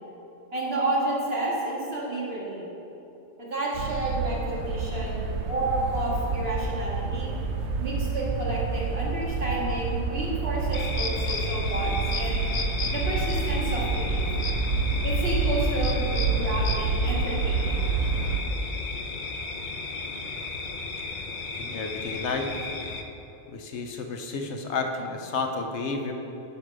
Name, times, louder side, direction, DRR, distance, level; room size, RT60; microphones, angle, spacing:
voice 1, 0.5-2.6 3.4-7.3 7.8-12.4 12.9-14.2 15.0-17.8, right 1 dB, 60° right, -5 dB, 2.1 m, -30 dB
sound 1, 3.7-18.4, right 4 dB, 75° right, 0.9 m, -28 dB
sound 2, 10.7-23.0, left 4 dB, 50° left, 0.7 m, -34 dB
voice 2, 21.5-22.5 23.5-26.1, left 4 dB, 75° left, 4 dB, 1.1 m, -31 dB
9.8 x 5.0 x 6.2 m, 3.0 s
omnidirectional pair, 1.2 m